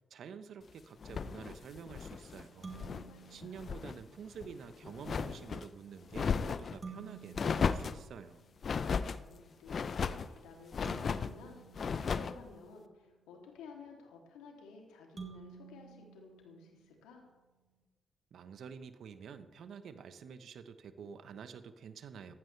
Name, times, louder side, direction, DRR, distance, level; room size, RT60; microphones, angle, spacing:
voice 1, 0.1-2.7 3.3-8.4 18.3-22.3, right 6 dB, 70° right, 11 dB, 1.1 m, -48 dB
sound 1, 1.0-3.1 3.4-4.0 4.3-5.7 6.1-6.8 7.3-8.0 8.6-9.2 9.7-10.3 10.7-11.3 11.7-12.4, left 6 dB, 55° left, 0.7 m, -35 dB
sound 2, 2.6-4.3 6.8-8.8 10.8-13.0 15.2-17.2, right 5 dB, 45° right, 3.2 m, -52 dB
voice 2, 2.9-3.7 9.3-17.2, left 4 dB, 80° left, 1 dB, 2.9 m, -54 dB
19.0 x 15.5 x 3.4 m, 1.2 s
hypercardioid pair, 40°, 0 cm